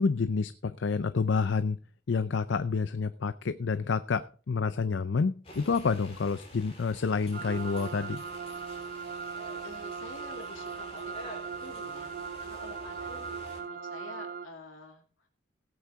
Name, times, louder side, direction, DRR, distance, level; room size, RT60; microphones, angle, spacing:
voice 1, 0.0-1.8 2.1-8.2, left 4 dB, 65° left, 13 dB, 0.5 m, -29 dB
sound 1, 5.4-13.6, equal, 30° left, 3.7 m, -49 dB
sound 2, 7.3-14.5, right 5 dB, 45° right, 0.5 m, -39 dB
voice 2, 9.0-9.3 9.6-15.3, left 2 dB, 85° left, 1 dB, 2.7 m, -49 dB
17.5 x 8.6 x 3.5 m, 0.39 s
head